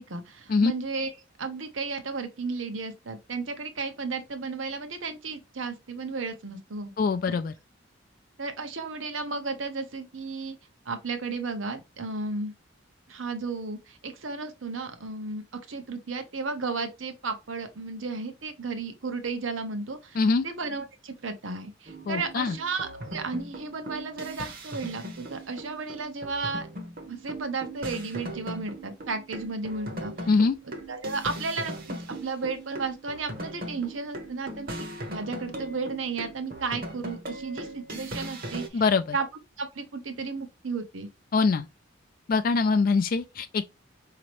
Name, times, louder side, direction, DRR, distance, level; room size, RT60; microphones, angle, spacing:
voice 1, 0.0-6.9 7.3-7.4 8.4-10.6 10.9-12.5 13.1-26.7 27.1-30.3 30.9-38.8 39.1-39.3 39.6-41.1, right 4 dB, 80° right, 0.9 m, -34 dB
voice 2, 7.0-7.5 20.2-20.4 22.1-22.6 30.3-30.6 38.7-39.0 41.3-41.7 42.3-43.7, left 4 dB, 45° left, 0.3 m, -23 dB
sound 1, 21.9-38.7, right 1 dB, 50° right, 1.0 m, -39 dB
5.1 x 2.9 x 3.0 m
head